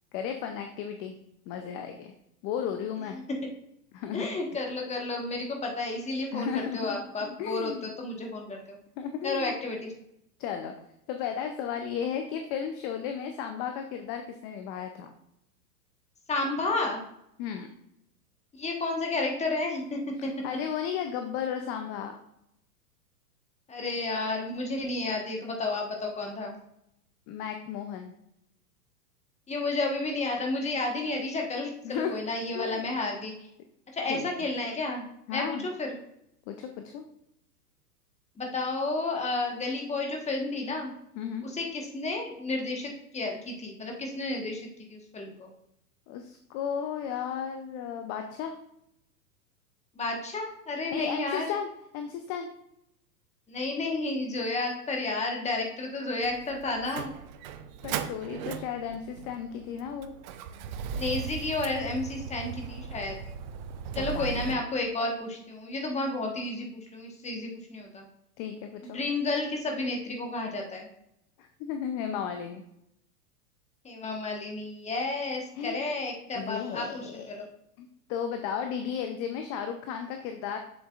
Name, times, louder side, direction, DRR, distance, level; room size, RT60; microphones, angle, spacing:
voice 1, 0.1-1.1 1.5-2.1 2.4-3.2 3.9-4.3 6.3-7.9 9.0-9.6 10.4-10.7 11.1-15.1 17.4-17.7 20.4-22.1 27.3-28.1 31.8-32.1 32.5-32.8 34.1-34.3 35.3-35.6 36.5-37.0 41.2-41.4 46.1-48.5 50.9-51.7 51.9-52.5 57.8-60.1 63.9-64.6 68.4-69.0 71.4-72.6 75.6-75.8 76.3-77.3 77.8-80.6, left 8 dB, 30° left, 6 dB, 0.6 m, -34 dB
voice 2, 4.1-8.8 9.2-9.9 16.3-17.0 18.6-20.3 23.7-26.6 29.5-33.3 33.9-35.9 38.4-40.9 41.4-45.5 49.9-51.5 53.5-57.1 61.0-63.2 63.9-68.1 68.8-70.9 73.8-77.4, left 2 dB, 15° left, 1 dB, 1.4 m, -31 dB
Motor vehicle (road), 56.2-64.6, right 7 dB, 30° right, 0.4 m, -38 dB
7.1 x 7.1 x 2.5 m, 0.78 s
hypercardioid pair, 110°, 47 cm